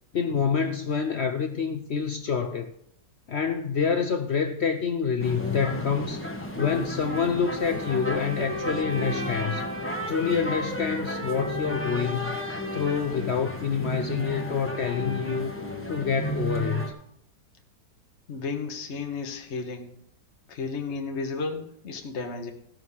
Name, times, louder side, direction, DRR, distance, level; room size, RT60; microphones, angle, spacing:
voice 1, 0.1-2.7 3.3-6.2 6.6-9.6 10.1-12.4 12.7-15.5 15.9-16.8, left 6 dB, 65° left, 0.6 m, -27 dB
sound 1, 5.2-16.9, equal, 10° left, 1.1 m, -32 dB
voice 2, 18.3-19.9 20.5-22.5, left 4 dB, 45° left, 1.4 m, -33 dB
15.0 x 6.3 x 5.6 m
omnidirectional pair, 1.9 m